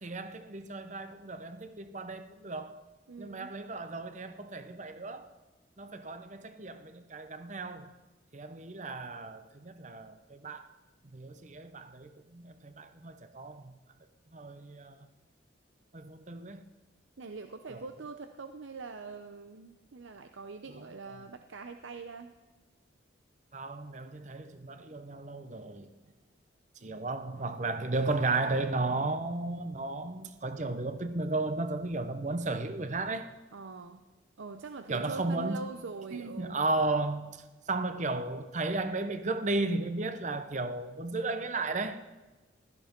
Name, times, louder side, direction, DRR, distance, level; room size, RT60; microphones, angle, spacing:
voice 1, 0.0-2.8 3.2-5.3 5.8-7.9 8.3-10.7 11.1-13.7 14.3-15.1 15.9-16.6 17.7-17.8 21.1-21.2 23.5-25.9 26.8-33.3 34.9-35.6 36.1-37.4 37.7-42.0, right 2 dB, 40° right, 0.8 m, -34 dB
voice 2, 3.1-3.5 17.2-22.3 33.5-34.0 34.4-36.6, right 4 dB, 85° right, 0.7 m, -43 dB
16.0 x 13.5 x 4.5 m
head